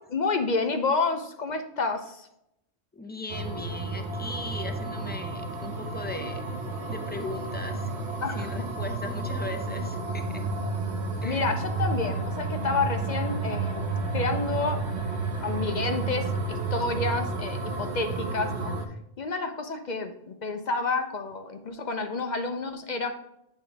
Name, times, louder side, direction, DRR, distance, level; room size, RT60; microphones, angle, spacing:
voice 1, 0.1-2.3 8.2-8.6 10.9-14.8 15.4-18.8 19.2-23.1, left 3 dB, 50° left, 6 dB, 0.7 m, -30 dB
voice 2, 2.9-6.4 6.9-7.9 8.3-10.4 11.2-11.4, left 3 dB, 15° left, 5 dB, 0.5 m, -38 dB
sound 1, 3.3-18.9, right 3 dB, 85° right, 1.2 m, -31 dB
8.9 x 3.3 x 4.6 m, 0.80 s
omnidirectional pair, 1.1 m